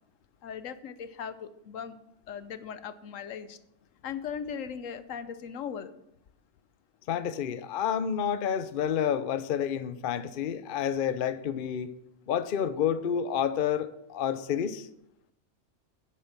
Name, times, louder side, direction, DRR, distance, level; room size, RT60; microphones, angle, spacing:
voice 1, 0.4-2.0 2.3-3.6 4.0-5.9, left 7 dB, 75° left, 12 dB, 1.1 m, -38 dB
voice 2, 7.1-11.9 12.3-14.9, left 8 dB, 55° left, 12 dB, 0.7 m, -29 dB
10.0 x 7.7 x 5.9 m, 0.80 s
omnidirectional pair, 1.4 m